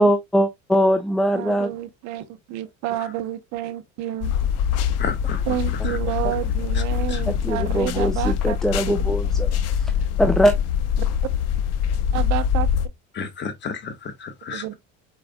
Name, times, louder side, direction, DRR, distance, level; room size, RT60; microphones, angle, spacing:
voice 1, 0.0-1.7 7.3-9.9 10.2-10.6, equal, ahead, 0.4 m, -21 dB
voice 2, 1.3-4.3 5.5-8.6 8.9-9.0 12.1-12.7 14.5-14.7, right 13 dB, 65° right, 0.9 m, -29 dB
sound 1, 4.2-12.9, left 8 dB, 55° left, 0.8 m, -23 dB
voice 3, 5.0-5.6 5.8-6.0 6.7-6.8 7.1-7.2 13.1-14.8, left 6 dB, 40° left, 1.2 m, -32 dB
5.0 x 4.7 x 2.2 m
cardioid pair, 115°, 30 cm